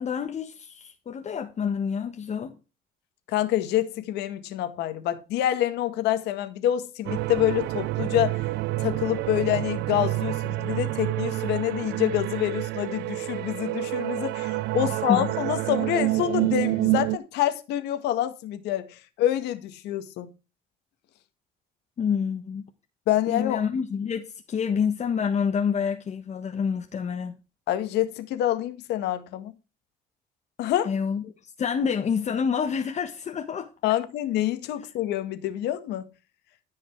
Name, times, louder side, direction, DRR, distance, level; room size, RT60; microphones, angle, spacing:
voice 1, 0.0-2.5 15.1-15.3 22.0-22.7 23.3-27.3 30.8-31.2 31.6-33.7, left 6 dB, 40° left, 1.4 m, -27 dB
voice 2, 3.3-8.5 8.8-20.3 23.1-23.6 27.7-29.5 30.6-30.9 33.8-36.1, left 12 dB, 85° left, 1.9 m, -27 dB
sound 1, 7.1-17.2, right 19 dB, 85° right, 0.6 m, -28 dB
14.5 x 5.8 x 4.7 m
cardioid pair, 110°, 17 cm